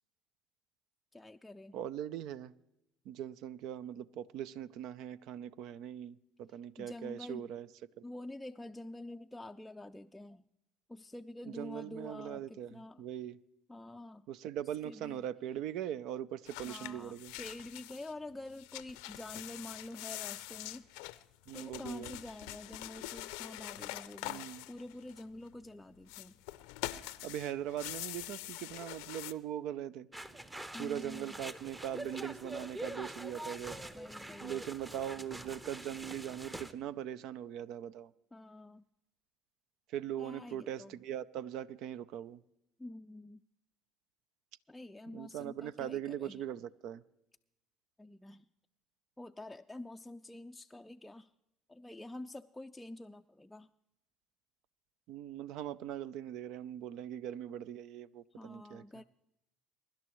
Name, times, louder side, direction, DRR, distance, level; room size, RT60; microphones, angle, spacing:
voice 1, 1.1-1.8 6.8-7.5 8.0-10.4 10.9-13.0 13.7-14.3 14.8-15.2 16.6-20.9 21.5-26.4 30.7-31.4 33.8-34.6 38.3-38.8 40.2-40.9 42.8-43.4 44.7-46.4 48.0-48.5 49.2-51.3 51.7-53.7 58.3-59.0, left 1 dB, 10° left, 0.4 m, -47 dB
voice 2, 1.7-2.5 3.1-7.7 11.6-13.4 14.3-17.3 21.5-22.1 24.2-24.6 27.2-30.1 30.8-33.8 34.4-38.1 39.9-42.4 45.1-47.0 55.1-58.8, right 10 dB, 65° right, 0.5 m, -41 dB
sound 1, 16.5-18.1 18.5-25.5 26.0-29.3, left 18 dB, 80° left, 0.5 m, -44 dB
sound 2, 30.1-36.7, right 1 dB, 15° right, 0.9 m, -45 dB
23.5 x 11.5 x 3.1 m
hypercardioid pair, 70°, 0 cm